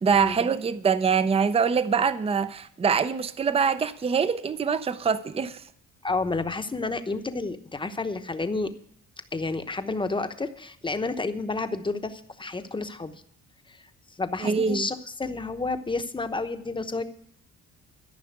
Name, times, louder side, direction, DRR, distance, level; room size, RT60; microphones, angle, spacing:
voice 1, 0.0-5.6 14.4-14.9, right 6 dB, 20° right, 0.6 m, -24 dB
voice 2, 6.0-8.7 9.3-13.2 13.7-13.8 14.2-17.0, left 3 dB, 15° left, 0.9 m, -30 dB
13.5 x 5.7 x 8.9 m
cardioid pair, 100°, 29 cm